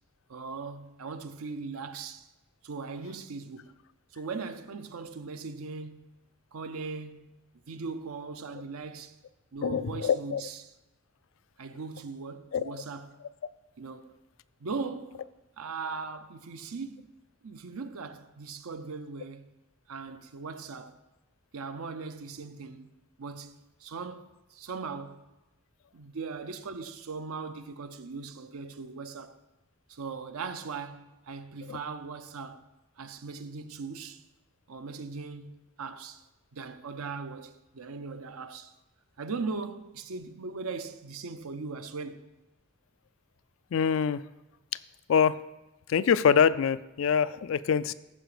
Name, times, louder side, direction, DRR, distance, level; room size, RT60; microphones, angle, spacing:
voice 1, 0.3-2.3 2.6-3.7 4.1-9.1 9.5-10.7 11.6-13.2 13.8-14.2 14.6-15.3 15.6-17.1 17.4-19.5 19.9-21.0 21.5-22.9 23.2-25.3 25.9-29.4 29.9-32.7 33.0-34.2 34.7-36.2 36.5-38.7 39.2-42.3, right 4 dB, 85° right, 0.6 m, -39 dB
voice 2, 9.6-10.4 12.5-12.8 31.7-31.8 43.7-44.2 45.1-45.4 45.9-47.9, left 7 dB, 65° left, 0.3 m, -24 dB
14.0 x 5.0 x 4.9 m
head